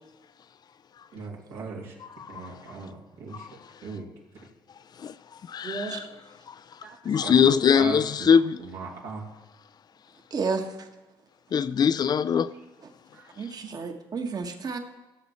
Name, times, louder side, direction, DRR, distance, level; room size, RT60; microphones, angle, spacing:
voice 1, 1.1-1.9 2.3-3.5 3.8-4.1 5.6-5.9 6.8-7.3 7.7-8.3 8.7-9.2 13.1-13.3, right 4 dB, 80° right, 2.5 m, -38 dB
voice 2, 2.0-2.5 3.3-3.6 5.0-5.1 5.5-6.1 6.5-6.8 7.0-8.6 11.5-12.5, left 7 dB, 45° left, 0.4 m, -23 dB
voice 3, 10.3-10.6 13.4-14.8, right 5 dB, 40° right, 1.4 m, -31 dB
17.0 x 6.9 x 4.3 m
supercardioid pair, 70°, 10 cm